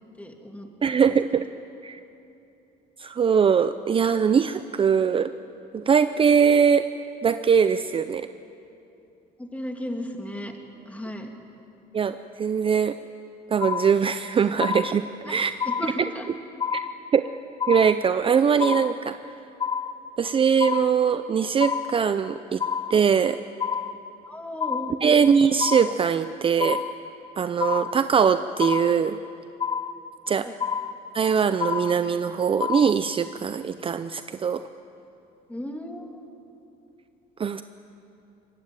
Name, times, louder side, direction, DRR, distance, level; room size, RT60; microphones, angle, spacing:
voice 1, 0.2-1.0 9.4-10.5 10.9-11.3 15.3-15.4 15.6-16.2 24.3-24.9 30.4-30.6 35.5-36.2, left 1 dB, 10° left, 3 dB, 2.8 m, -35 dB
voice 2, 0.8-1.5 1.8-2.0 3.0-5.3 5.7-6.8 7.2-8.3 11.9-13.0 13.5-15.5 16.7-16.9 17.1-17.2 17.7-19.2 20.2-22.6 22.9-23.4 25.0-26.8 27.4-29.2 30.3-30.5 31.1-34.6 37.4-37.6, right 6 dB, 30° right, 11 dB, 0.6 m, -21 dB
sound 1, 13.6-14.3 14.6-15.3 15.6-16.3 16.6-17.3 17.6-18.3 18.6-19.3 19.6-20.3 20.6-21.3 21.6-22.3 22.6-23.3 23.6-24.3 24.6-25.3 25.6-26.3 26.6-27.3 27.6-28.3 28.6-29.3 29.6-30.3 30.6-31.3 31.6-32.3 32.6-33.3, left 7 dB, 30° left, 1.1 m, -29 dB
24.0 x 19.5 x 9.1 m, 2.7 s
cardioid pair, 110°, 17 cm